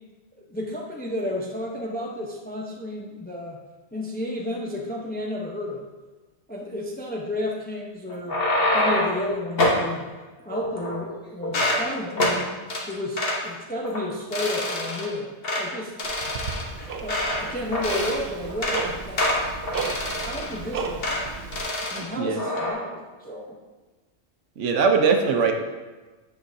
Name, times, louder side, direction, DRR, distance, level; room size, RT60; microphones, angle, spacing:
voice 1, 0.5-3.6 3.9-5.8 6.5-8.4 8.7-10.1 10.4-12.5 12.9-15.9 17.0-19.3 19.8-21.2 21.9-23.6, left 1 dB, 10° left, -1 dB, 0.5 m, -32 dB
sound 1, 8.1-9.2 9.6-9.8 10.5-11.1 11.4-11.8 12.2-12.4 12.7-12.8 13.2-13.4 13.8-14.0 14.3-15.1 15.4-15.6 16.0-17.4 17.7-18.2 18.5-18.8 19.2-20.6 21.0-21.2 21.5-22.0 22.4-22.7, left 1 dB, 50° left, 1.2 m, -25 dB
Tick-tock, 16.0-21.6, right 4 dB, 55° right, 0.7 m, -34 dB
voice 2, 24.6-25.5, right 5 dB, 75° right, 4 dB, 1.0 m, -20 dB
8.8 x 5.7 x 2.7 m, 1.2 s
omnidirectional pair, 1.3 m